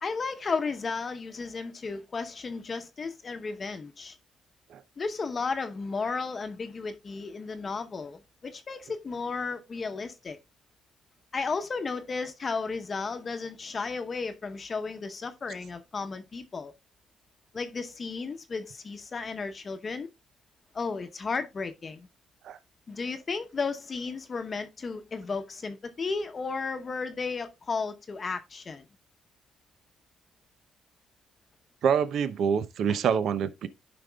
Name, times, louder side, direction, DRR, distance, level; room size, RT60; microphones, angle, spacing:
voice 1, 0.0-4.2 5.0-10.4 11.3-16.7 17.5-20.1 20.7-22.1 22.9-28.8 32.9-33.0, left 4 dB, 40° left, 0.8 m, -34 dB
voice 2, 31.8-33.7, right 7 dB, 70° right, 0.6 m, -26 dB
15.0 x 5.2 x 2.3 m
cardioid pair, 90°, 0 cm